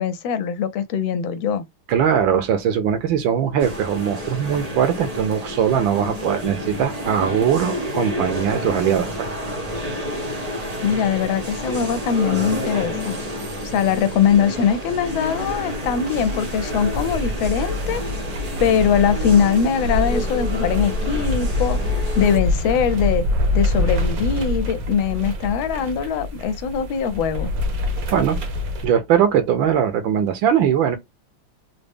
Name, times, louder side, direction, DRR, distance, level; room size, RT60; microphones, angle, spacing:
voice 1, 0.0-1.7 10.8-13.2 13.6-18.0 18.6-23.2 23.5-27.5, left 7 dB, 75° left, 1.4 m, -21 dB
voice 2, 1.9-9.3 28.1-28.4 28.8-31.0, right 8 dB, 75° right, 1.4 m, -20 dB
sound 1, 3.6-22.4, equal, 40° right, 0.5 m, -30 dB
sound 2, 15.1-28.9, left 2 dB, 60° right, 1.0 m, -25 dB
3.9 x 2.0 x 3.5 m
omnidirectional pair, 2.3 m